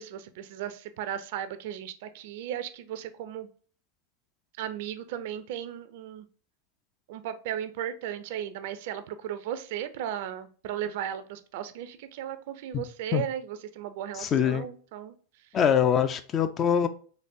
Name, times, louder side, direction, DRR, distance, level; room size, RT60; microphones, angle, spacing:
voice 1, 0.0-3.5 4.6-6.3 7.1-15.2, right 10 dB, 55° right, 0.4 m, -36 dB
voice 2, 14.2-14.7 15.5-16.9, left 8 dB, 30° left, 0.4 m, -23 dB
4.0 x 3.0 x 2.5 m
figure-of-eight pair, 90°, 0 cm